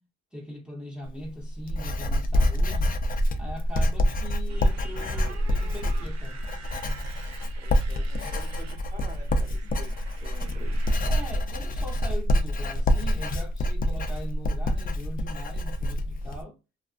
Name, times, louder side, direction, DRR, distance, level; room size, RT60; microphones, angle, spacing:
voice 1, 0.3-3.0 3.3-6.5 11.1-16.6, equal, 5° right, 0.7 m, -41 dB
Writing, 1.0-16.4, left 1 dB, 30° left, 0.4 m, -26 dB
Motorcycle, 4.5-11.0, right 6 dB, 60° right, 0.5 m, -47 dB
voice 2, 7.6-10.9, left 1 dB, 25° right, 1.2 m, -47 dB
2.4 x 2.3 x 2.3 m
cardioid pair, 90°, 30 cm